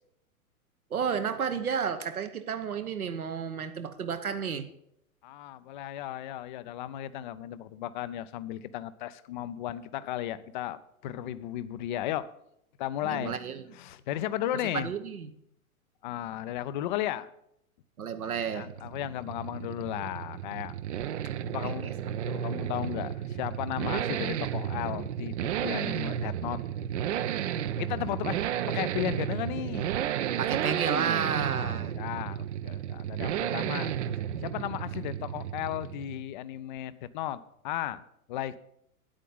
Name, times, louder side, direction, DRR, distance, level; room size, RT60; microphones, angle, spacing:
voice 1, 0.9-4.7 13.0-13.6 14.7-15.3 18.0-18.7 21.6-21.9 30.4-31.9, right 6 dB, 75° right, 8 dB, 1.1 m, -31 dB
voice 2, 5.2-12.3 12.8-13.3 13.7-14.9 16.0-17.3 18.5-20.8 21.5-22.0 22.3-26.6 27.8-28.4 28.7-29.9 31.5-33.9 34.4-38.0 38.3-38.6, left 12 dB, 35° left, 15 dB, 0.5 m, -35 dB
sound 1, 18.3-36.3, right 10 dB, 55° right, 0.6 m, -33 dB
9.1 x 8.7 x 5.4 m, 0.75 s
figure-of-eight pair, 105°, 43 cm